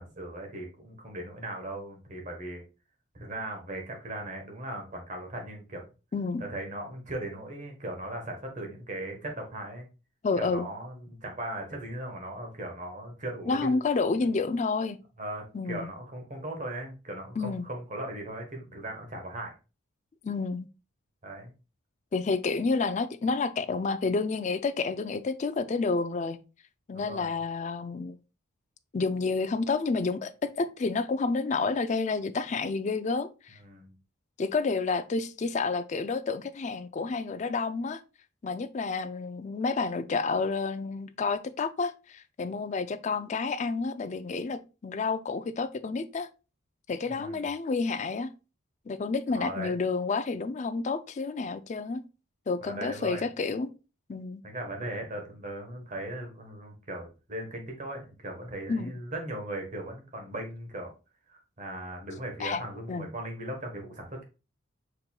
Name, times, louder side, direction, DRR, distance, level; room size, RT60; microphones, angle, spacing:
voice 1, 0.0-2.6 3.1-5.8 6.4-9.9 10.4-13.8 15.2-19.5 21.2-21.5 26.9-27.4 33.6-33.9 47.1-47.5 49.3-49.7 52.6-53.3 54.4-60.9 61.3-64.2, right 1 dB, 40° right, 1.2 m, -38 dB
voice 2, 6.1-6.4 10.2-10.7 13.5-15.0 15.5-15.9 17.4-17.7 20.2-20.7 22.1-26.4 26.9-28.2 28.9-33.6 34.4-38.0 38.4-46.3 46.9-48.3 48.9-52.0 52.5-53.7 54.1-54.4 58.7-58.9 62.4-62.6 62.9-63.1, left 4 dB, 35° left, 0.3 m, -30 dB
5.2 x 4.4 x 2.3 m
head